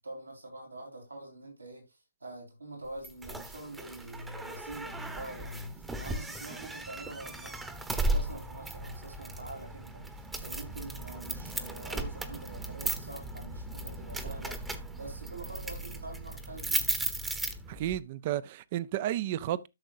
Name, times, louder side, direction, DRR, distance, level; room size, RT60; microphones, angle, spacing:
voice 1, 0.0-7.5 8.0-16.9, right 2 dB, 90° right, 4.4 m, -45 dB
sound 1, 3.0-18.0, right 2 dB, 5° right, 0.9 m, -36 dB
voice 2, 17.7-19.7, right 13 dB, 35° right, 0.5 m, -32 dB
13.0 x 6.3 x 2.6 m
figure-of-eight pair, 140°, 0 cm